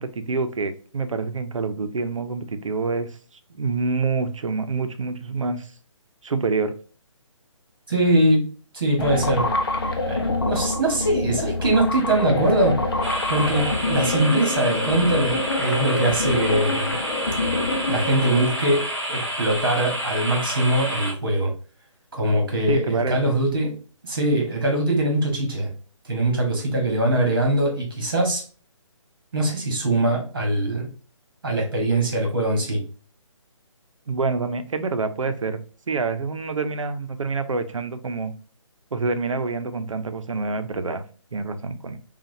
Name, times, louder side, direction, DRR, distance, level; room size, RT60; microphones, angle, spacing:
voice 1, 0.0-3.1 3.5-5.7 6.2-6.7 22.7-23.3 34.1-35.6 35.9-38.3 38.9-41.0 41.3-42.0, right 4 dB, 70° right, 0.7 m, -26 dB
voice 2, 7.9-8.5 8.7-9.5 10.0-12.8 13.3-17.0 17.9-21.5 22.1-23.7 24.0-25.7 26.0-28.4 29.3-30.9 31.4-32.8, right 1 dB, 45° right, 1.5 m, -22 dB
sound 1, 9.0-18.5, left 2 dB, 45° left, 0.6 m, -26 dB
sound 2, 13.0-21.1, equal, 10° right, 1.6 m, -29 dB
5.6 x 2.4 x 2.7 m
hypercardioid pair, 180°, 17 cm